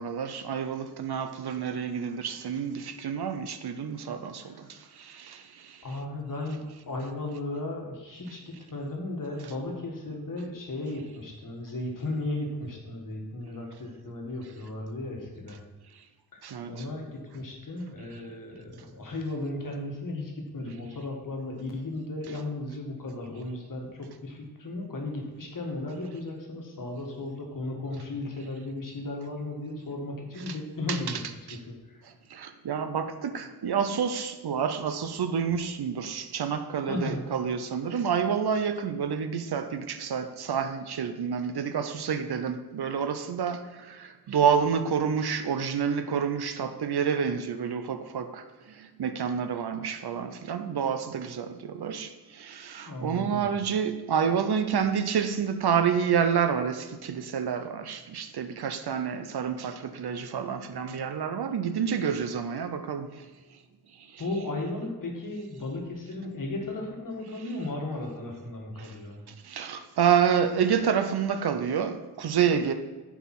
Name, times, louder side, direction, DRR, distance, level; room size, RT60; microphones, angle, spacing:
voice 1, 0.0-4.4 5.1-5.4 16.4-16.8 30.5-30.6 30.9-31.2 31.5-31.6 32.3-43.6 43.9-48.4 49.0-52.1 52.4-63.1 69.5-72.7, right 7 dB, 70° right, 0.7 m, -28 dB
voice 2, 5.8-15.6 16.3-17.1 17.3-31.2 31.7-32.0 36.9-37.3 52.8-53.5 64.2-69.2, left 2 dB, 50° left, 1.6 m, -35 dB
7.0 x 4.9 x 5.8 m
wide cardioid pair, 105°, 40 cm